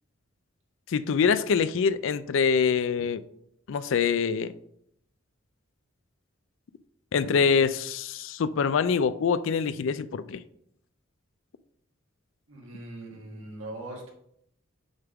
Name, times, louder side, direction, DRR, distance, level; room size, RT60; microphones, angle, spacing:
voice 1, 0.9-3.2 3.7-4.5 7.1-10.4, left 6 dB, 65° left, 0.4 m, -25 dB
voice 2, 12.5-14.1, right 1 dB, 80° right, 1.9 m, -40 dB
6.5 x 3.6 x 5.9 m
head